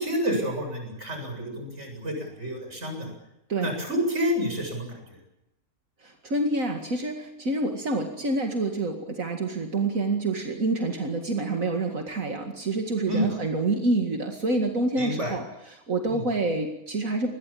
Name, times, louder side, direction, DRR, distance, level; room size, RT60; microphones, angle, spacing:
voice 1, 0.0-3.1 3.6-5.0 13.1-13.2 15.0-15.3 16.1-16.2, equal, 55° right, 3 dB, 8.1 m, -29 dB
voice 2, 6.0-17.3, right 2 dB, 70° right, 3 dB, 2.6 m, -27 dB
27.5 x 21.5 x 8.6 m, 0.89 s
omnidirectional pair, 1.5 m